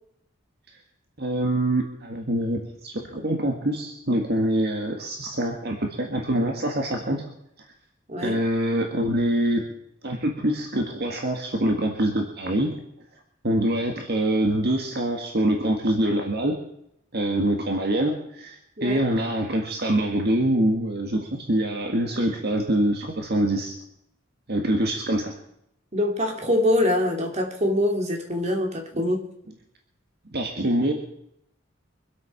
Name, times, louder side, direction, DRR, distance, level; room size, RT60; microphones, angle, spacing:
voice 1, 1.2-7.2 8.2-9.6 10.0-12.7 13.4-16.6 17.1-23.7 24.5-25.3 30.3-30.9, right 1 dB, 55° right, 3 dB, 1.8 m, -25 dB
voice 2, 8.1-8.4 18.8-19.0 25.9-29.2, left 1 dB, 35° right, 2 dB, 2.5 m, -24 dB
24.5 x 8.5 x 5.8 m, 0.75 s
head